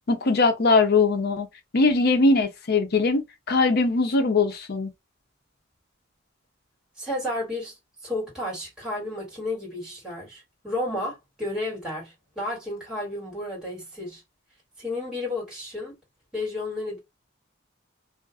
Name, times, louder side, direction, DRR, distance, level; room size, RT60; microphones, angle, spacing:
voice 1, 0.1-1.5 1.7-4.9, left 3 dB, 50° left, 0.6 m, -21 dB
voice 2, 7.0-7.7 8.0-14.2 14.8-15.9 16.3-17.0, left 2 dB, 5° right, 1.6 m, -32 dB
2.5 x 2.3 x 2.4 m
head